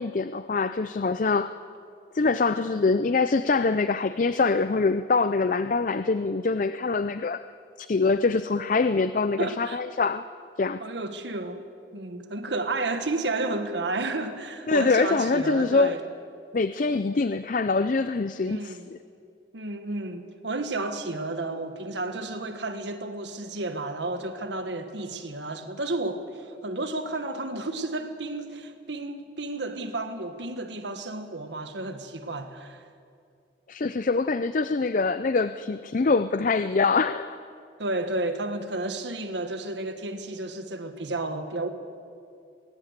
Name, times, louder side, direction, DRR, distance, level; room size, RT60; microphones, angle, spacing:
voice 1, 0.0-1.5 2.1-7.4 7.8-10.2 10.6-10.8 14.7-15.9 16.5-19.0 33.7-37.4, left 4 dB, 45° left, 0.5 m, -24 dB
voice 2, 9.4-9.8 10.8-11.6 11.9-16.0 18.5-18.8 19.5-32.8 37.8-41.7, right 2 dB, 85° right, 1.7 m, -32 dB
20.0 x 18.5 x 8.2 m
head